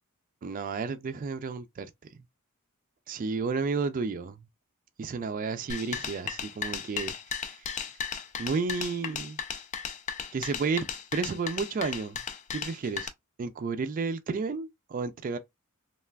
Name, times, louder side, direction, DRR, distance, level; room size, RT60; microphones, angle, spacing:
voice 1, 0.4-1.9 3.1-4.5 5.0-7.6 8.4-9.4 10.3-10.9 11.1-12.2 12.5-13.1 13.4-15.4, right 4 dB, 40° right, 0.3 m, -32 dB
sound 1, 5.7-13.1, left 7 dB, 35° left, 0.4 m, -35 dB
3.3 x 2.3 x 2.2 m
head